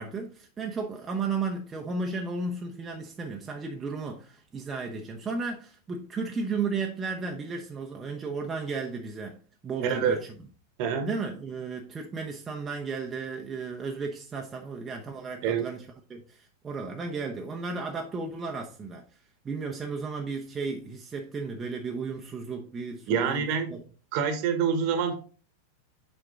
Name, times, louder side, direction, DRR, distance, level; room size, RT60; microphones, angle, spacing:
voice 1, 0.0-10.3 11.0-19.0 19.4-23.8, right 4 dB, 20° right, 0.8 m, -34 dB
voice 2, 9.8-10.2 10.8-11.1 15.4-15.6 23.1-23.7 24.1-25.1, right 7 dB, 45° right, 1.2 m, -26 dB
6.6 x 4.5 x 3.6 m
figure-of-eight pair, 90°, 0 cm